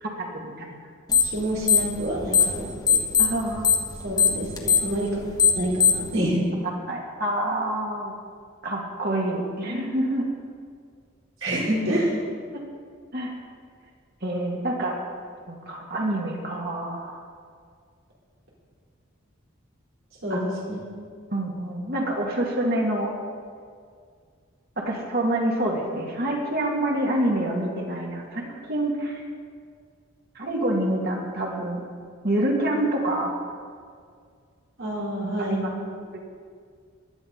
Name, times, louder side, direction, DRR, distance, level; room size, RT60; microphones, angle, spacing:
voice 1, 0.0-0.7 3.2-3.8 6.9-8.2 8.6-10.3 11.5-11.7 12.5-12.6 13.1-13.3 14.2-15.0 15.5-17.2 20.3-20.4 21.3-23.1 24.8-29.2 30.4-31.9 32.2-33.4 35.5-35.7 36.1-36.2, right 1 dB, 50° right, -1 dB, 2.3 m, -27 dB
sound 1, 1.1-1.4 1.6-2.6 2.9-6.1, left 7 dB, 20° left, 1.3 m, -19 dB
voice 2, 1.2-3.0 4.0-5.2 5.6-6.4 11.4-12.2 20.2-20.8 34.8-35.7, right 1 dB, 80° right, -5 dB, 4.1 m, -27 dB
16.5 x 12.0 x 4.1 m, 2.1 s
head